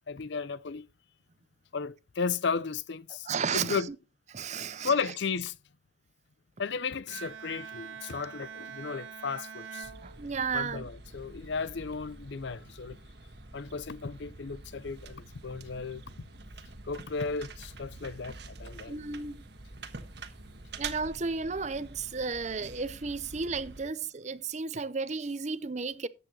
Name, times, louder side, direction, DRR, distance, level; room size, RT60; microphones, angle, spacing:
voice 1, 0.1-0.9 1.7-3.3 3.5-3.9 4.8-5.6 6.6-9.9 10.5-13.0 13.5-16.0 16.8-18.9, left 5 dB, 65° left, 0.6 m, -34 dB
voice 2, 3.3-3.8 4.3-4.9 10.0-10.9 18.9-19.4 20.8-26.1, right 5 dB, 35° right, 0.6 m, -33 dB
Bowed string instrument, 7.1-10.8, right 6 dB, 90° right, 1.2 m, -44 dB
sound 1, 9.8-23.8, right 3 dB, 55° right, 1.4 m, -46 dB
13.5 x 8.7 x 2.8 m
head